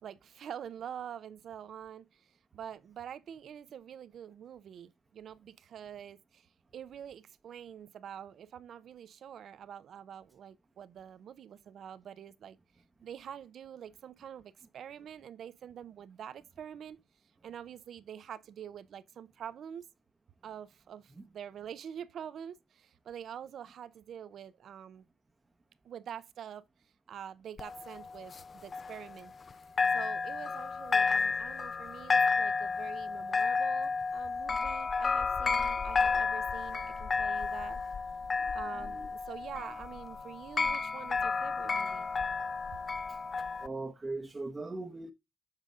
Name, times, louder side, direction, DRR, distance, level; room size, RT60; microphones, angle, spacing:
voice 1, 0.0-12.6 13.0-17.0 17.4-19.8 20.4-25.0 25.8-26.6 27.1-29.3 29.9-37.8 38.5-42.1, right 9 dB, 65° right, 0.7 m, -46 dB
sound 1, 27.6-29.5 29.8-43.7, left 4 dB, 40° left, 0.4 m, -31 dB
voice 2, 43.6-45.1, right 3 dB, 25° right, 0.8 m, -39 dB
7.4 x 5.1 x 3.7 m
cardioid pair, 90°, 0 cm